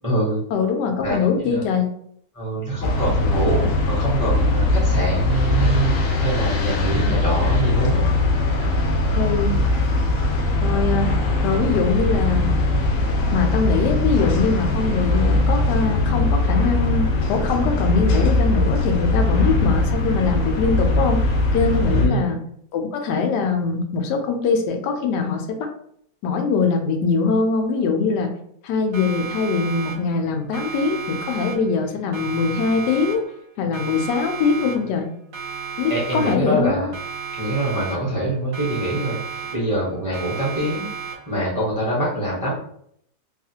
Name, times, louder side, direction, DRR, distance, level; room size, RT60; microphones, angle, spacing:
voice 1, 0.0-0.4 1.0-1.6 2.3-8.0 21.9-22.2 35.9-36.9 37.3-40.9 41.3-42.5, right 1 dB, 20° right, -6 dB, 0.5 m, -24 dB
voice 2, 0.5-1.9 9.2-9.6 10.6-11.1 11.4-12.5 13.3-21.2 21.5-22.4 22.7-25.7 26.2-28.3 28.6-33.2 33.6-35.1 35.8-36.9, left 4 dB, 90° left, 4 dB, 1.2 m, -22 dB
sound 1, 2.8-22.1, left 2 dB, 65° left, 0.8 m, -20 dB
Siren, 28.9-30.3 30.5-31.9 32.1-33.5 33.7-35.1 35.3-36.7 36.9-38.3 38.5-39.9 40.1-41.5, right 6 dB, 65° right, 0.9 m, -34 dB
3.0 x 2.4 x 2.7 m, 0.68 s
omnidirectional pair, 1.8 m